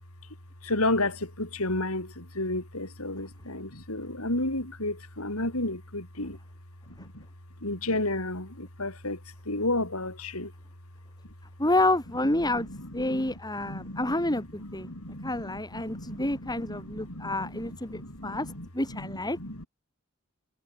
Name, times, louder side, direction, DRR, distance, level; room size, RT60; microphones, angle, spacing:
voice 1, 0.6-6.4 6.9-7.2 7.6-9.2 9.5-10.5 12.4-19.7, left 2 dB, 70° left, 7.5 m, -33 dB
voice 2, 11.6-12.7 12.9-14.9 15.2-19.4, left 1 dB, 20° left, 7.1 m, -29 dB
head